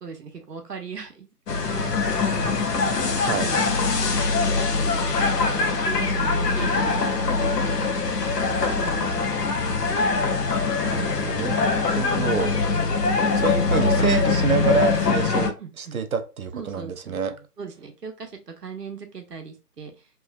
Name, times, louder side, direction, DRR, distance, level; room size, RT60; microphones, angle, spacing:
voice 1, 0.0-2.8 3.4-3.6 4.4-8.1 8.5-9.8 10.7-12.5 13.8-14.2 15.6-16.0 16.5-20.1, right 6 dB, 85° right, 4 dB, 0.9 m, -39 dB
sound 1, 1.5-15.5, left 4 dB, 85° left, 0.7 m, -23 dB
voice 2, 12.0-12.5 13.3-17.3, right 6 dB, 65° right, 8 dB, 0.5 m, -27 dB
3.0 x 2.0 x 2.3 m, 0.29 s
figure-of-eight pair, 170°, 47 cm